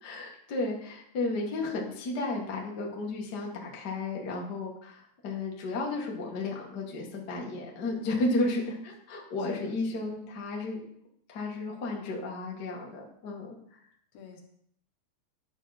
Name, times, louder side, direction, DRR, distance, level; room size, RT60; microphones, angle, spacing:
voice 1, 0.0-10.8 11.3-13.6, left 2 dB, 35° left, -1 dB, 1.7 m, -33 dB
voice 2, 7.9-8.3 8.6-8.8 9.5-10.2 14.1-14.4, left 7 dB, 75° left, 2 dB, 3.1 m, -45 dB
11.5 x 7.4 x 4.3 m, 0.67 s
omnidirectional pair, 4.4 m